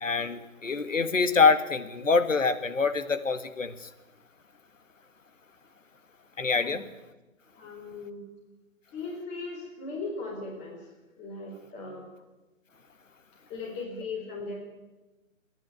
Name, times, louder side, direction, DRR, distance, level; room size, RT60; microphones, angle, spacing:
voice 1, 0.0-3.9 6.4-6.8, left 4 dB, 70° left, 10 dB, 1.8 m, -25 dB
voice 2, 7.6-8.3 8.9-10.9 11.2-12.1 13.5-14.6, left 3 dB, 15° left, 0 dB, 4.2 m, -38 dB
27.0 x 10.5 x 9.2 m, 1.1 s
figure-of-eight pair, 140°, 40 cm